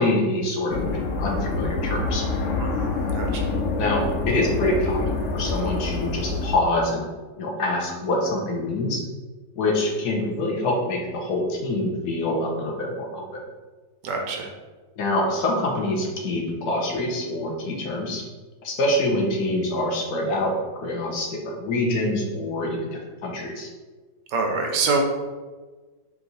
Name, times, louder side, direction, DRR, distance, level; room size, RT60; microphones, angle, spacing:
voice 1, 0.0-2.2 3.8-7.0 7.4-9.0 9.6-13.2 15.0-18.2 18.6-23.7, left 1 dB, 65° left, 0 dB, 1.3 m, -25 dB
sound 1, 0.7-6.6, left 3 dB, 80° left, 0.6 m, -26 dB
voice 2, 2.6-3.5 14.0-14.5 24.3-25.0, right 4 dB, 75° right, 2 dB, 1.2 m, -26 dB
4.7 x 2.7 x 4.0 m, 1.3 s
omnidirectional pair, 2.0 m